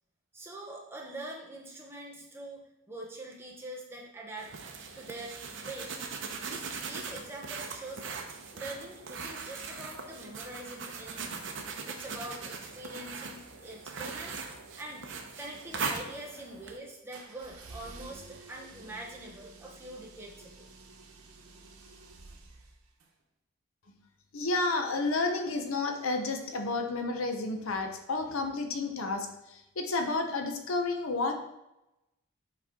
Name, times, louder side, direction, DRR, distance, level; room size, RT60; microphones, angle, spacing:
voice 1, 0.3-2.6 2.9-4.5 4.9-5.4 5.6-6.0 6.5-11.5 11.8-14.4 14.8-20.7, right 1 dB, 10° right, -1 dB, 0.9 m, -44 dB
sound 1, 4.4-16.8, right 4 dB, 60° right, 0.7 m, -40 dB
sound 2, 17.1-23.1, right 3 dB, 85° right, 1.0 m, -51 dB
voice 2, 24.3-31.3, left 3 dB, 75° left, 5 dB, 0.7 m, -31 dB
7.3 x 4.0 x 3.6 m, 0.92 s
head